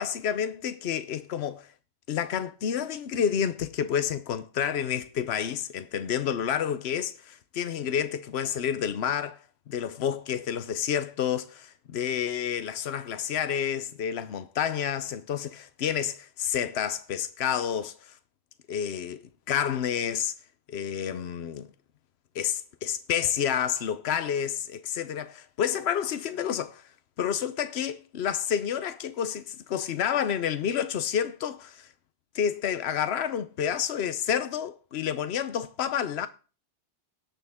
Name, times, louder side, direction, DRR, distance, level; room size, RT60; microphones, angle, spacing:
voice 1, 0.0-1.7 2.1-9.4 9.7-18.1 18.7-19.2 19.5-20.3 20.7-21.7 22.3-26.8 27.2-31.9 32.3-36.3, left 8 dB, 80° left, 1.0 m, -29 dB
17.5 x 6.6 x 3.6 m
omnidirectional pair, 1.1 m